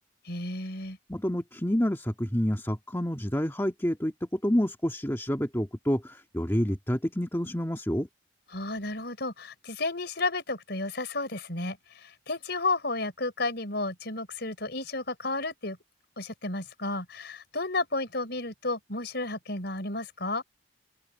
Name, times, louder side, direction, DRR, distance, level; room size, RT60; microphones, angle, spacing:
voice 1, 0.3-1.0 8.5-15.8 16.2-20.4, left 2 dB, 55° left, 5.6 m, -32 dB
voice 2, 1.1-8.1, equal, 10° left, 1.9 m, -28 dB
open air
head